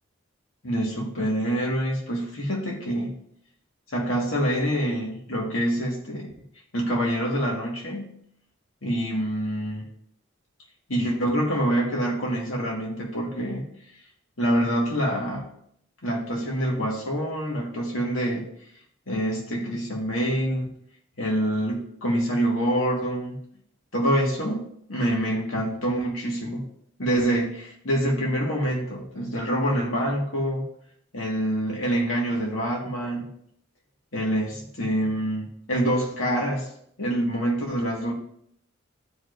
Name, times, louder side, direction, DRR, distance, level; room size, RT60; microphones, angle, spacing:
voice 1, 0.6-3.1 3.9-6.3 6.7-8.2 8.8-9.9 10.9-13.6 14.4-15.5 16.0-18.5 19.1-20.7 21.2-23.4 23.9-26.6 27.0-30.6 31.1-33.3 34.1-36.7 37.0-38.1, equal, 90° left, -1 dB, 1.8 m, -26 dB
14.0 x 4.9 x 2.6 m, 0.68 s
head